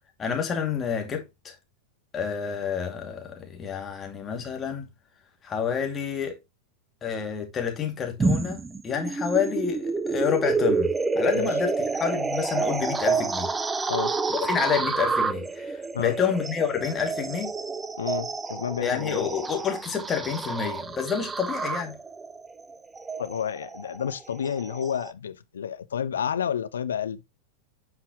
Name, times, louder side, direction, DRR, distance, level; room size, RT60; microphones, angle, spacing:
voice 1, 0.2-1.6 2.1-4.9 5.4-6.4 7.0-13.5 14.3-17.5 18.8-22.0, left 7 dB, 20° left, 2.4 m, -29 dB
sound 1, 8.2-25.1, right 4 dB, 15° right, 0.5 m, -29 dB
voice 2, 18.0-19.3 23.2-27.2, left 8 dB, 65° left, 0.7 m, -30 dB
9.9 x 5.7 x 3.0 m
figure-of-eight pair, 90°, 0 cm